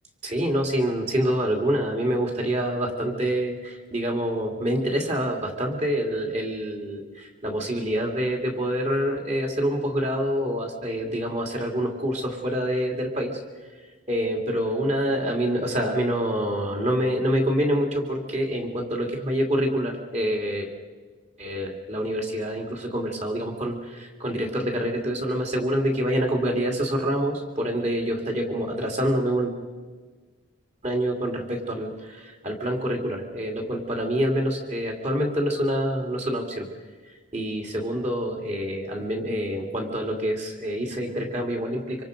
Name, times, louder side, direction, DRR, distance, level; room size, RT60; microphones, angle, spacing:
voice 1, 0.2-13.4 14.1-20.7 21.4-29.5 30.8-36.7 37.0-42.0, equal, 35° right, 2 dB, 2.8 m, -26 dB
25.5 x 25.0 x 5.3 m, 1.4 s
head